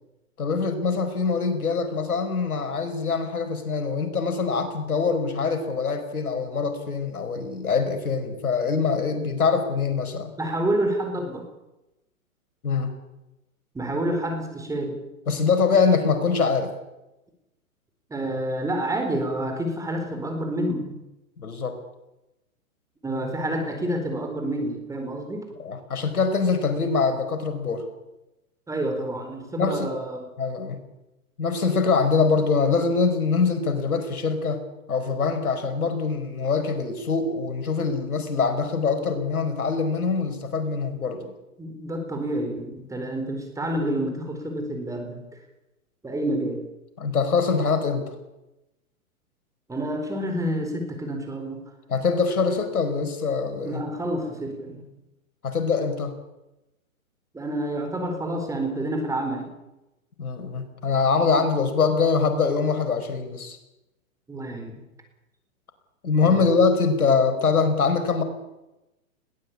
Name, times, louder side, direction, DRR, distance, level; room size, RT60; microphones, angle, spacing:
voice 1, 0.4-10.3 12.6-12.9 15.3-16.7 21.4-21.8 25.6-27.8 29.6-29.9 30.4-30.8 31.4-34.6 34.9-41.2 47.0-48.0 51.9-53.8 55.4-56.1 60.2-63.6 66.0-68.2, left 5 dB, 85° left, 8 dB, 4.8 m, -23 dB
voice 2, 10.4-11.5 13.7-15.0 18.1-21.0 23.0-25.5 28.7-30.2 41.2-41.3 41.6-45.2 46.0-46.6 49.7-51.7 53.6-54.8 57.3-59.5 64.3-64.8 66.2-66.5, right 1 dB, 5° right, 5 dB, 4.3 m, -28 dB
21.0 x 17.0 x 8.6 m, 0.96 s
hypercardioid pair, 135°, 42 cm